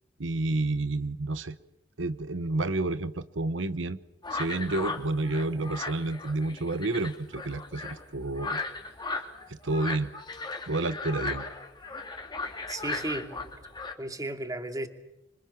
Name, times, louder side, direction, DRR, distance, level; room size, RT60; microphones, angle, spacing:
voice 1, 0.2-1.6 2.0-4.0 4.3-8.6 9.5-10.1 10.7-11.5, right 2 dB, 90° right, 1.0 m, -30 dB
sound 1, 4.2-13.9, left 3 dB, 25° left, 3.2 m, -37 dB
voice 2, 12.7-13.5 14.0-14.9, right 2 dB, 20° right, 2.6 m, -34 dB
28.0 x 25.5 x 7.3 m
head